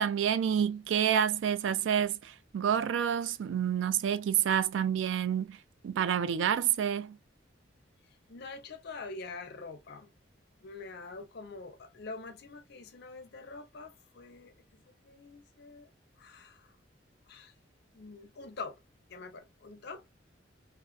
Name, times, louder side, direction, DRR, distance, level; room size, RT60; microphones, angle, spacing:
voice 1, 0.0-5.6 5.8-7.2, right 8 dB, 70° right, 0.3 m, -28 dB
voice 2, 8.3-10.1 10.6-15.9 16.2-16.7 17.3-17.5 17.9-18.8 19.1-20.0, left 3 dB, 60° left, 0.5 m, -45 dB
2.4 x 2.3 x 2.3 m
head